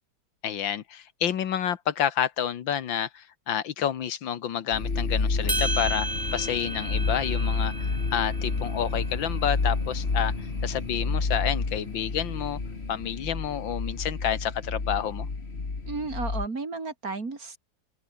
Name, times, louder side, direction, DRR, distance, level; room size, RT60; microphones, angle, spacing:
voice 1, 0.4-12.6 12.9-15.3, left 9 dB, 75° left, 2.0 m, -29 dB
sound 1, 4.7-16.5, left 4 dB, 30° left, 2.4 m, -30 dB
sound 2, 5.4-13.6, left 2 dB, 15° left, 3.0 m, -43 dB
sound 3, 5.5-9.9, right 2 dB, 15° right, 1.0 m, -34 dB
voice 2, 15.9-17.6, right 3 dB, 45° right, 3.4 m, -33 dB
omnidirectional pair, 2.1 m